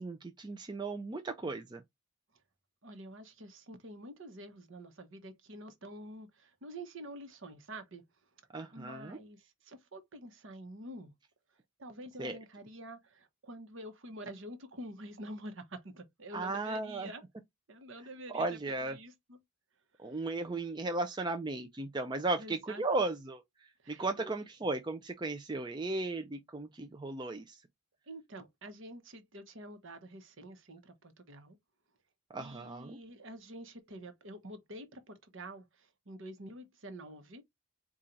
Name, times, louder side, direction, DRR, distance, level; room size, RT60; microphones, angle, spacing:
voice 1, 0.0-1.8 8.5-9.2 12.2-12.4 16.3-17.1 18.3-19.0 20.0-23.4 23.9-27.6 32.3-33.0, right 2 dB, 20° right, 0.4 m, -35 dB
voice 2, 2.8-8.1 8.7-11.1 11.8-17.2 17.7-19.4 20.0-20.3 22.4-22.8 23.8-24.3 28.1-31.6 32.4-37.4, right 1 dB, 55° right, 0.9 m, -48 dB
4.3 x 2.4 x 3.8 m
head